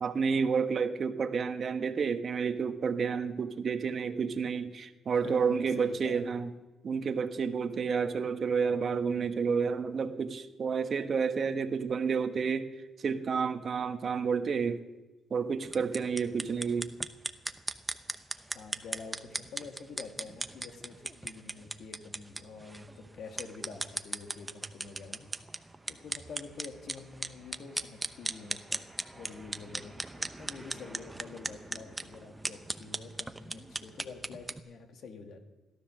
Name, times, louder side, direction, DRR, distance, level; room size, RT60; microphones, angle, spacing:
voice 1, 0.0-6.5 6.8-12.7 13.0-14.8 15.3-16.9, right 5 dB, 50° right, 8 dB, 1.2 m, -30 dB
voice 2, 5.1-6.3 18.5-35.4, left 4 dB, 65° left, 4 dB, 2.3 m, -47 dB
sound 1, 15.6-34.6, right 2 dB, 15° right, 0.8 m, -39 dB
16.5 x 12.5 x 6.4 m, 1.1 s
cardioid pair, 90°, 0 cm